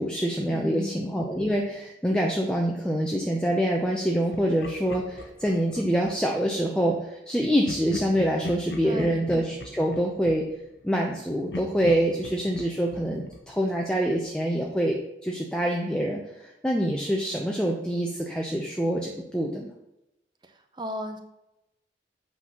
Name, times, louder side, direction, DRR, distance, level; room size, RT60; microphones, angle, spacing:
voice 1, 0.0-10.5 10.8-19.7, equal, 5° left, -1 dB, 0.6 m, -26 dB
voice 2, 0.5-0.9 8.8-9.2 20.7-21.2, equal, 25° right, 6 dB, 0.8 m, -34 dB
Laughter, 4.3-6.4 7.6-11.1 11.5-14.3, left 1 dB, 70° left, 0.9 m, -40 dB
8.6 x 4.0 x 6.0 m, 0.89 s
head